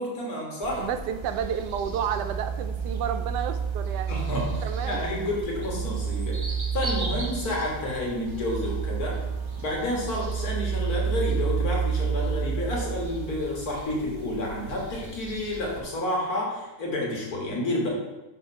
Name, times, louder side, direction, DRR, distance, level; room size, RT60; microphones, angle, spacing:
voice 1, 0.0-0.9 4.1-9.2 9.6-17.9, left 1 dB, 65° left, -2 dB, 2.0 m, -30 dB
sound 1, 0.6-15.8, right 1 dB, 35° right, 0.4 m, -41 dB
voice 2, 0.8-4.1 4.6-5.0, right 8 dB, 85° right, 9 dB, 1.2 m, -31 dB
sound 2, 1.1-13.8, right 7 dB, 60° right, 0.8 m, -30 dB
5.4 x 4.4 x 5.5 m, 1.1 s
omnidirectional pair, 1.8 m